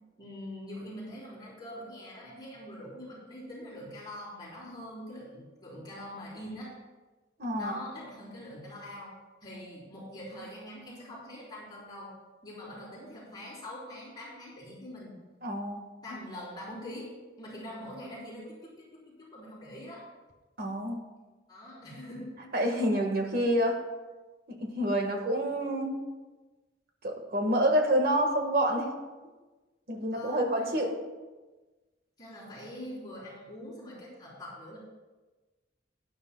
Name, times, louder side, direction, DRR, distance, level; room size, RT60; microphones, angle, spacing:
voice 1, 0.2-6.7 7.5-9.1 9.4-12.1 12.4-15.2 16.0-17.1 17.4-20.0 21.5-22.3 30.1-30.9 32.2-34.8, left 1 dB, 25° left, -7 dB, 4.0 m, -43 dB
voice 2, 7.4-7.7 15.4-15.8 20.6-21.0 22.5-23.8 24.5-25.9 27.0-28.9 29.9-30.9, equal, 55° right, 3 dB, 1.6 m, -28 dB
17.0 x 10.0 x 2.3 m, 1.2 s
head